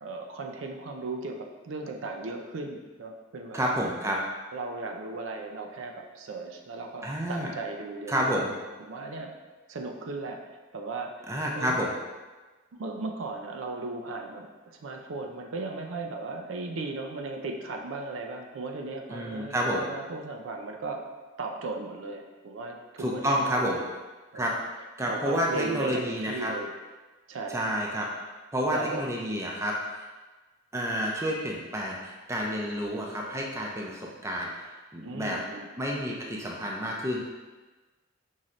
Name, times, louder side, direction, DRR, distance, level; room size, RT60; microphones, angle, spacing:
voice 1, 0.0-3.8 4.5-8.4 8.8-9.3 9.7-10.4 10.7-11.8 12.8-14.5 14.8-21.0 21.4-23.6 24.3-24.5 25.1-26.7 27.3-27.6 28.7-29.1 35.0-35.7, right 3 dB, 75° right, 3 dB, 0.5 m, -36 dB
voice 2, 3.5-4.2 7.0-7.5 8.1-8.5 11.3-11.9 19.1-19.8 23.0-23.8 24.3-24.5 25.0-26.5 27.5-28.1 28.5-30.1 30.7-34.7 34.9-35.4 35.8-37.2, equal, 15° right, -2 dB, 0.5 m, -29 dB
5.5 x 3.1 x 2.5 m, 1.2 s
head